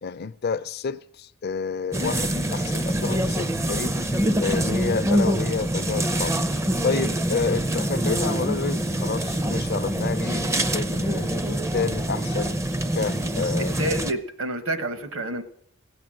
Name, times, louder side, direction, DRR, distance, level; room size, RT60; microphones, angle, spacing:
voice 1, 0.0-4.0 4.4-6.4 6.8-12.6 12.9-13.7, left 5 dB, 45° left, 0.5 m, -29 dB
sound 1, 1.9-14.1, right 1 dB, 15° right, 0.4 m, -25 dB
voice 2, 13.8-15.4, right 1 dB, 70° right, 1.2 m, -28 dB
16.5 x 8.1 x 7.6 m
head